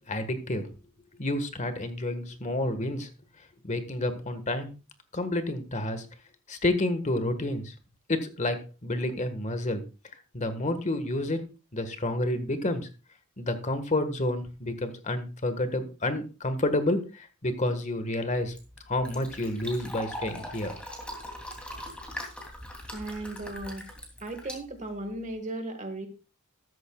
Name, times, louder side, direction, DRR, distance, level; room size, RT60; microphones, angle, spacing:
voice 1, 0.1-0.7 1.2-3.1 3.6-4.8 5.1-6.0 6.5-7.7 8.1-9.8 10.3-11.4 11.7-12.9 13.4-18.5 18.9-20.7, left 1 dB, 35° left, 9 dB, 1.5 m, -29 dB
Fill (with liquid), 18.3-25.4, equal, 5° left, 2.8 m, -41 dB
voice 2, 22.9-23.9 24.2-26.1, right 2 dB, 35° right, 7 dB, 1.6 m, -36 dB
13.5 x 13.0 x 2.3 m, 0.31 s
head